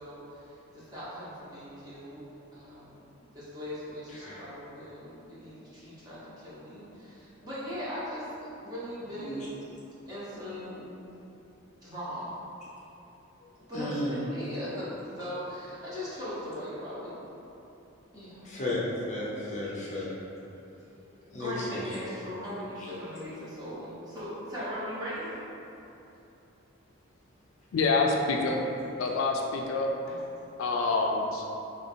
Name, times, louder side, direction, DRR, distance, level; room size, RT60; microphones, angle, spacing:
voice 1, 0.0-2.3 2.5-9.7 10.1-10.9 11.8-12.3 13.7-17.2 18.1-18.5 19.1-19.4 21.3-25.4 30.1-30.2, equal, 20° right, -11 dB, 0.9 m, -39 dB
voice 2, 13.7-14.2 18.4-20.1 21.3-21.8 22.8-22.9, left 1 dB, 35° left, -6 dB, 0.7 m, -33 dB
voice 3, 27.7-28.6 29.0-29.9 30.6-31.4, left 3 dB, 70° left, 1 dB, 0.3 m, -26 dB
3.2 x 2.5 x 4.3 m, 3.0 s
head